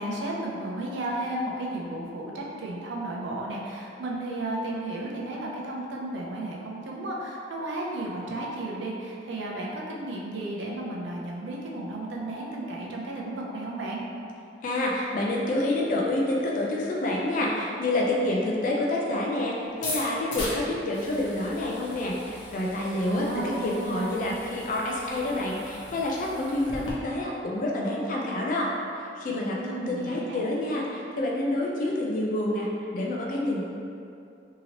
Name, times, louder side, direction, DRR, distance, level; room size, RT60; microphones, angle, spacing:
voice 1, 0.0-14.0 23.0-24.1 29.6-30.4, right 1 dB, 75° right, -3 dB, 0.5 m, -33 dB
voice 2, 14.6-19.5 19.8-28.7 29.2-32.7 32.9-33.6, left 1 dB, 45° left, -2 dB, 0.3 m, -28 dB
sound 1, 19.7-26.9, left 1 dB, 85° left, 0.7 m, -39 dB
2.9 x 2.8 x 2.8 m, 2.6 s
head